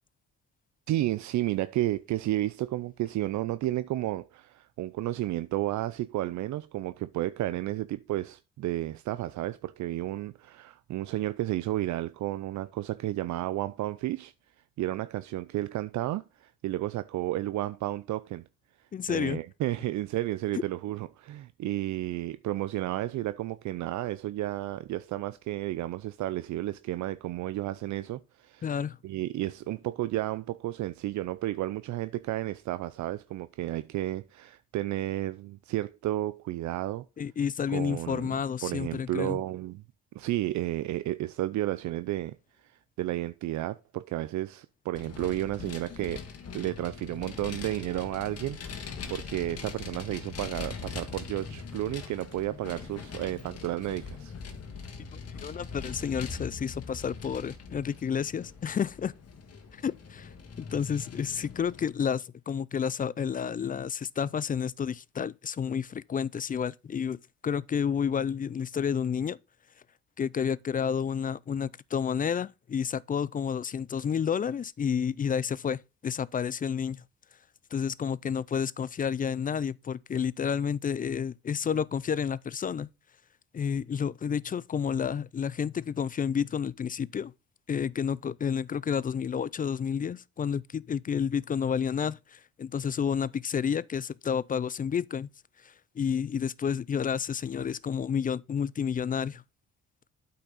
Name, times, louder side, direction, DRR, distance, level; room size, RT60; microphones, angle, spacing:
voice 1, 0.9-14.3 14.8-18.4 19.1-28.7 29.0-37.1 37.7-39.8 40.1-42.4 42.6-42.7 43.0-46.3 46.5-54.3, right 15 dB, 70° right, 0.5 m, -32 dB
voice 2, 18.9-19.4 28.6-29.0 37.2-39.4 55.1-59.1 59.8-60.3 60.6-69.4 70.2-77.0 77.7-82.9 83.5-87.3 87.7-95.3 95.6-99.4, left 7 dB, 30° left, 0.4 m, -30 dB
Vehicle, 44.9-61.9, left 5 dB, 55° left, 1.7 m, -42 dB
8.6 x 5.7 x 4.0 m
cardioid pair, 90°, 30 cm